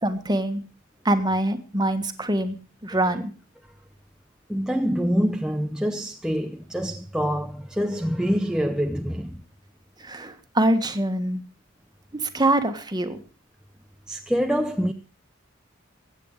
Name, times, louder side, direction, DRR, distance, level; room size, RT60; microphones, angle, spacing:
voice 1, 0.0-0.6 1.0-2.6 2.8-3.3 10.0-11.4 12.2-13.2, right 1 dB, 20° right, 1.6 m, -24 dB
voice 2, 4.5-9.4 14.1-14.9, equal, 5° right, 0.7 m, -25 dB
23.0 x 9.1 x 4.9 m
head